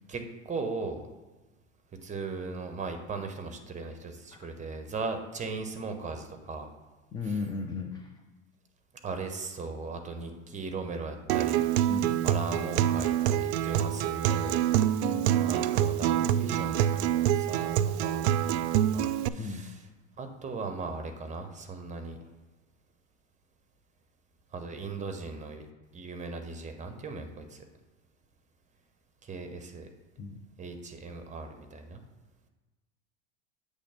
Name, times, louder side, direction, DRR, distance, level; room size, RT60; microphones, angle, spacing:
voice 1, 0.1-1.0 2.0-6.7 9.0-11.9 12.2-14.6 15.5-18.6 18.9-19.8 20.2-22.2 24.5-25.6 25.9-27.6 29.3-29.9 30.6-32.0, right 4 dB, 20° right, 6 dB, 1.0 m, -38 dB
voice 2, 7.1-8.1 11.9-12.2 15.0-15.3 19.4-19.7 30.2-30.4, left 4 dB, 10° left, 4 dB, 0.3 m, -35 dB
Acoustic guitar, 11.3-19.3, right 11 dB, 55° right, 0.5 m, -26 dB
8.1 x 3.4 x 5.7 m, 1.2 s
hypercardioid pair, 95°, 39 cm